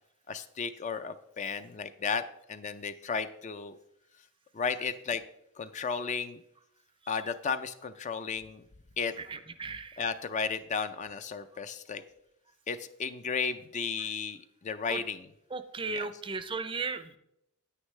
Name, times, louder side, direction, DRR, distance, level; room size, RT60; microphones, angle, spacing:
voice 1, 0.3-2.2 2.5-3.8 4.5-5.2 5.6-6.4 7.1-8.6 9.0-9.1 10.0-12.0 12.7-15.3 15.9-16.1, left 5 dB, 35° left, 11 dB, 0.4 m, -34 dB
voice 2, 9.2-10.0 14.9-15.0 15.5-17.1, right 4 dB, 25° right, 11 dB, 0.5 m, -36 dB
9.7 x 8.8 x 3.2 m, 0.80 s
head